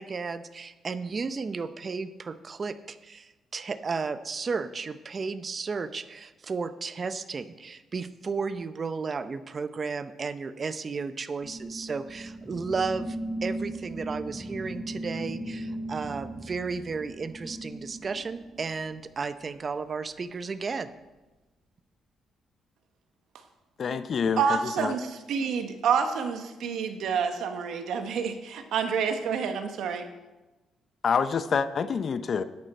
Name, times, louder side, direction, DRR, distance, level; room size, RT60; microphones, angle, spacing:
voice 1, 0.0-13.2 13.4-20.9, right 4 dB, 40° right, 12 dB, 0.6 m, -33 dB
sound 1, 11.4-19.2, right 1 dB, ahead, 1.2 m, -38 dB
voice 2, 23.8-25.0 26.6-26.8 31.0-32.4, left 6 dB, 50° left, 13 dB, 0.6 m, -27 dB
voice 3, 24.4-30.1, right 6 dB, 75° right, 7 dB, 1.1 m, -28 dB
11.5 x 8.9 x 4.3 m, 1.1 s
cardioid pair, 90°, 0 cm